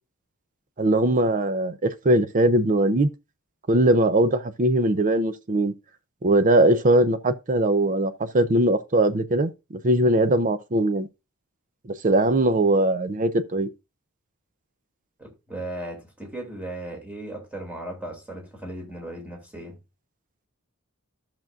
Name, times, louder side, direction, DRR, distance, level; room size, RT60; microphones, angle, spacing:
voice 1, 0.8-3.1 3.7-5.7 6.2-9.5 9.8-11.1 12.0-13.7, right 1 dB, 40° right, 0.6 m, -20 dB
voice 2, 15.2-19.8, right 1 dB, 5° right, 2.6 m, -36 dB
14.0 x 6.0 x 2.5 m
head